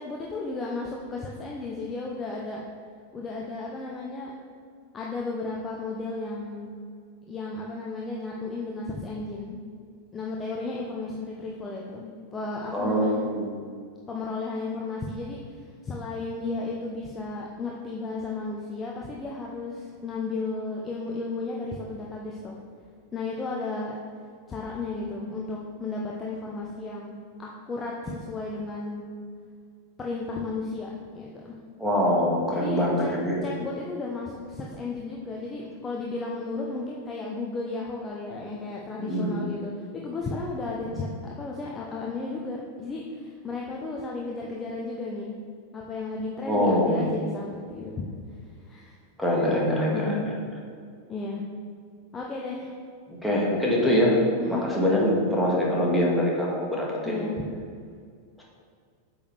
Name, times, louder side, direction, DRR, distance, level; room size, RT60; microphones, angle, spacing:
voice 1, 0.0-2.6 3.1-4.3 4.9-6.7 7.3-9.6 10.1-13.3 14.1-22.6 23.1-24.0 24.5-29.0 30.0-31.6 32.5-33.1 33.4-45.3 45.7-48.0 48.6-48.9 49.9-50.3 51.1-51.4 52.1-52.7 54.4-54.6 57.0-57.4, left 3 dB, 20° left, -2 dB, 0.8 m, -34 dB
voice 2, 12.7-13.6 31.8-33.4 39.0-39.4 46.4-47.1 49.2-50.2 53.1-54.2 54.5-57.2 58.4-58.5, equal, ahead, -5 dB, 1.8 m, -24 dB
8.5 x 6.3 x 3.4 m, 2.2 s
figure-of-eight pair, 90°, 0 cm